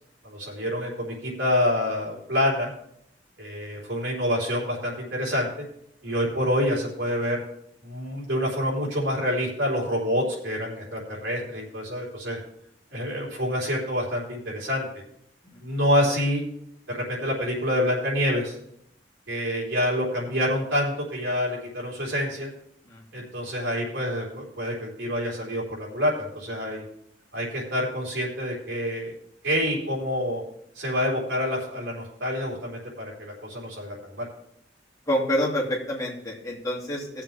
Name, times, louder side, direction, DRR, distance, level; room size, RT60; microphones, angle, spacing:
voice 1, 0.2-2.7 3.4-5.7 6.0-7.4 7.8-12.4 12.9-14.9 15.6-16.4 16.9-18.6 19.3-22.5 23.1-26.8 27.3-29.1 29.4-30.4 30.8-34.3, equal, 85° right, -3 dB, 4.0 m, -27 dB
voice 2, 35.1-37.2, equal, 20° left, -4 dB, 2.5 m, -27 dB
18.0 x 7.3 x 3.4 m, 0.73 s
head